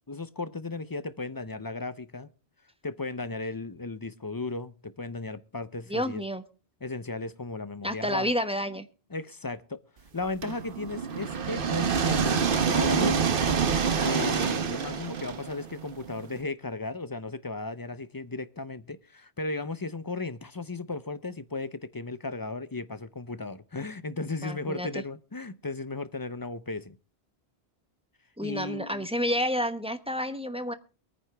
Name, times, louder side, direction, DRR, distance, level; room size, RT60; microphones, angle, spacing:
voice 1, 0.1-2.3 2.8-6.2 6.8-8.3 9.1-9.8 10.1-13.2 14.0-27.0 28.4-29.1, left 3 dB, 25° left, 0.5 m, -35 dB
voice 2, 5.9-6.4 7.8-8.9 24.4-25.0 28.4-30.7, equal, 5° right, 0.9 m, -30 dB
sound 1, 10.4-16.3, right 6 dB, 55° right, 1.1 m, -27 dB
23.0 x 9.6 x 3.4 m
omnidirectional pair, 1.1 m